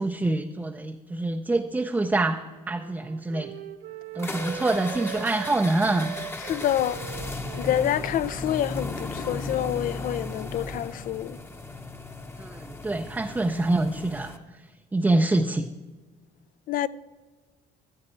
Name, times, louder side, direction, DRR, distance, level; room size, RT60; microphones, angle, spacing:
voice 1, 0.0-2.4 2.7-3.5 4.1-6.1 12.4-14.3 14.9-15.7, right 2 dB, 10° right, 0.5 m, -25 dB
Wind instrument woodwind instrument, 1.7-5.6 5.9-9.5 9.7-10.3, right 11 dB, 75° right, 0.8 m, -43 dB
sound 1, 4.2-14.4, left 2 dB, 15° left, 0.8 m, -36 dB
voice 2, 6.5-7.0 7.6-11.4 16.7-16.9, left 11 dB, 55° left, 0.4 m, -27 dB
14.5 x 7.9 x 4.4 m
cardioid pair, 110°, 17 cm